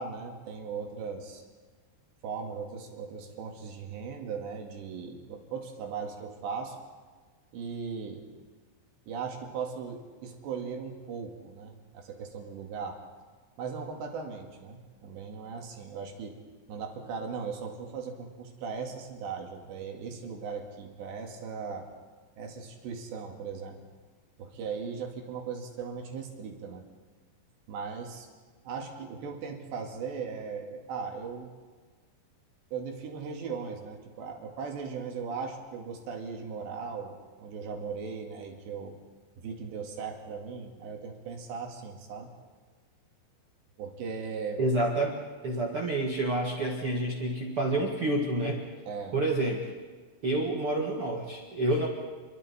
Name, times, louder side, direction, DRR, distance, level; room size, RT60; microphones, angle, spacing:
voice 1, 0.0-1.4 2.2-6.8 7.5-8.3 9.1-13.0 13.6-16.4 16.7-21.9 22.4-23.8 24.4-26.8 27.7-28.3 28.6-31.5 32.7-39.0 39.4-42.3 43.8-44.6 48.9-49.2, right 5 dB, 65° right, 2 dB, 4.2 m, -38 dB
voice 2, 44.6-48.7 49.1-49.7 50.2-51.9, right 1 dB, 85° right, 0 dB, 1.2 m, -28 dB
30.0 x 23.0 x 4.3 m, 1.4 s
omnidirectional pair, 5.6 m